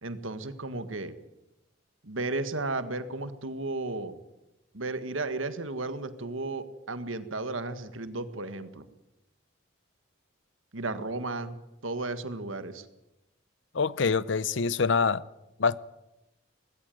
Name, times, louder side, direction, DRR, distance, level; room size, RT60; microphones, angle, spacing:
voice 1, 0.0-1.1 2.0-4.2 4.7-8.8 10.7-12.8, right 2 dB, 90° right, 11 dB, 1.7 m, -34 dB
voice 2, 13.7-15.2 15.6-15.8, left 5 dB, 65° left, 19 dB, 0.7 m, -25 dB
20.0 x 16.5 x 9.3 m, 0.93 s
head